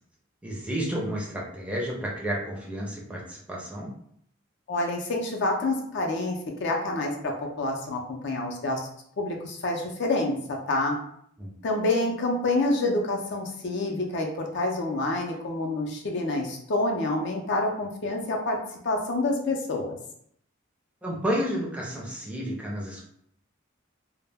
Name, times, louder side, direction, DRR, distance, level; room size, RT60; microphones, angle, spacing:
voice 1, 0.4-3.9 11.4-11.5 21.0-23.0, equal, 5° right, -4 dB, 0.5 m, -31 dB
voice 2, 4.7-8.8 9.2-10.4 10.7-11.0 11.6-18.6 18.8-20.0, left 2 dB, 60° left, 1 dB, 0.4 m, -27 dB
2.1 x 2.0 x 3.3 m, 0.68 s
head